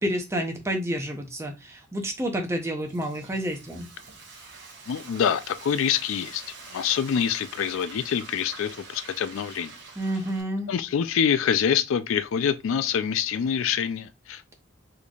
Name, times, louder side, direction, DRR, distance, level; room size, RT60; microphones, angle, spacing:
voice 1, 0.0-3.9 10.0-10.7, equal, 15° right, 0.6 m, -29 dB
Frying (food), 2.5-10.4, right 4 dB, 55° right, 1.0 m, -45 dB
voice 2, 4.9-6.4 6.7-9.7 10.7-14.5, left 8 dB, 70° left, 0.3 m, -26 dB
4.1 x 3.2 x 2.3 m
head